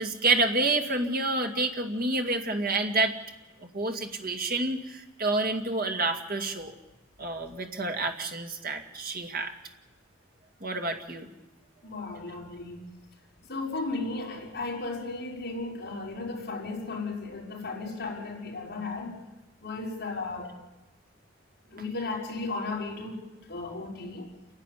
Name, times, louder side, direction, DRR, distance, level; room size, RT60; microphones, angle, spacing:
voice 1, 0.0-3.1 3.6-6.7 7.2-9.5 10.6-11.3, right 2 dB, 45° right, 3 dB, 2.2 m, -28 dB
voice 2, 11.8-12.8 13.5-19.1 19.6-20.6 21.7-23.2 23.5-24.3, left 3 dB, 50° left, -2 dB, 5.2 m, -35 dB
28.5 x 11.5 x 10.0 m, 1.1 s
head